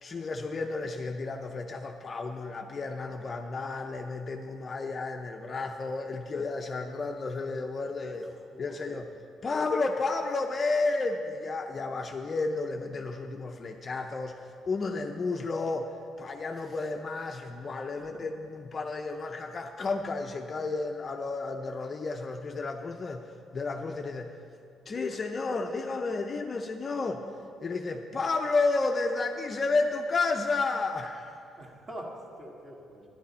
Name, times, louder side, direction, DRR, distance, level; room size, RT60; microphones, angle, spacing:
voice 1, 0.0-8.3 8.6-9.1 9.4-14.4 14.7-15.9 16.2-23.2 23.5-24.3 24.9-27.2 27.6-31.4, left 3 dB, 30° left, 4 dB, 0.5 m, -31 dB
voice 2, 8.3-9.0 16.5-16.8 17.7-18.2 31.6-33.0, equal, 25° right, -1 dB, 1.6 m, -45 dB
12.0 x 10.5 x 4.2 m, 2.4 s
cardioid pair, 150°, 0 cm